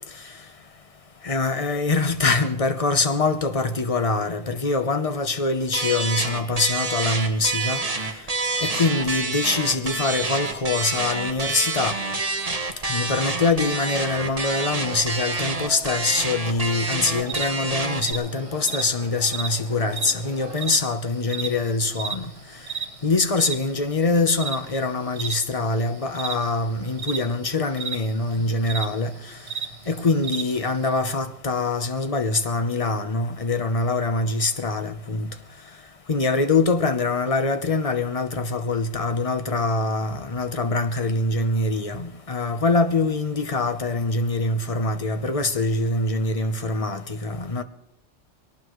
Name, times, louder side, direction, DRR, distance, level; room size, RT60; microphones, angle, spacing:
voice 1, 1.2-7.8 8.6-12.0 12.8-22.3 23.0-29.1 29.9-35.3 36.1-47.6, left 3 dB, 30° left, 0.9 m, -24 dB
sound 1, 5.7-18.1, right 3 dB, 30° right, 1.4 m, -28 dB
sound 2, 14.2-20.8, left 1 dB, 75° left, 3.2 m, -43 dB
sound 3, 17.3-31.0, right 6 dB, 55° right, 1.1 m, -33 dB
22.5 x 18.5 x 3.2 m
omnidirectional pair, 1.2 m